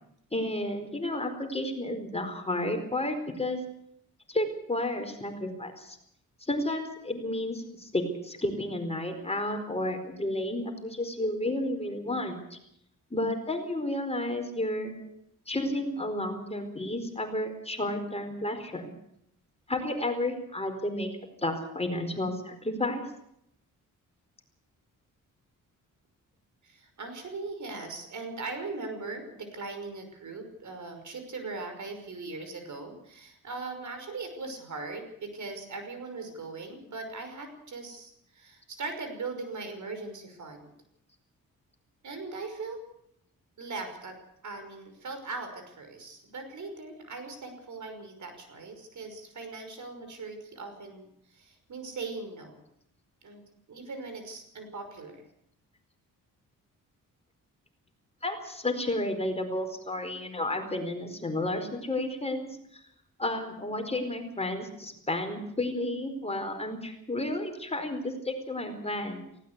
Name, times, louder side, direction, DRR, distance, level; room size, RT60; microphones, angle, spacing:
voice 1, 0.3-3.6 4.3-6.0 6.5-12.6 13.1-14.9 15.5-18.9 19.7-21.1 21.4-23.0 58.2-62.6 63.2-69.2, left 1 dB, 20° left, 5 dB, 4.5 m, -32 dB
voice 2, 26.6-40.7 42.0-42.8 43.6-44.2 44.4-52.6 53.2-53.4 53.7-55.2, right 3 dB, 60° right, 7 dB, 5.7 m, -40 dB
18.5 x 17.0 x 8.2 m, 0.75 s
cardioid pair, 80°, 34 cm